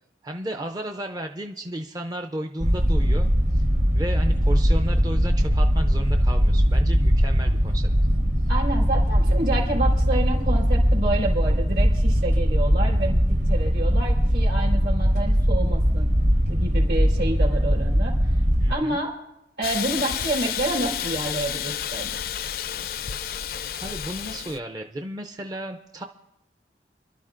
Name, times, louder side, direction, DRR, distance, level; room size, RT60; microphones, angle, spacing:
voice 1, 0.2-3.6 3.9-7.9 18.6-19.0 23.8-26.0, right 1 dB, 20° right, 4 dB, 0.4 m, -33 dB
sound 1, 2.6-18.7, equal, 45° right, 1.0 m, -20 dB
voice 2, 8.5-16.1 16.5-18.2 18.7-19.1 19.6-22.1, right 2 dB, 75° right, -2 dB, 3.6 m, -28 dB
Hiss, 19.6-24.6, left 9 dB, 55° left, 0.4 m, -30 dB
27.5 x 12.0 x 2.5 m, 0.88 s
head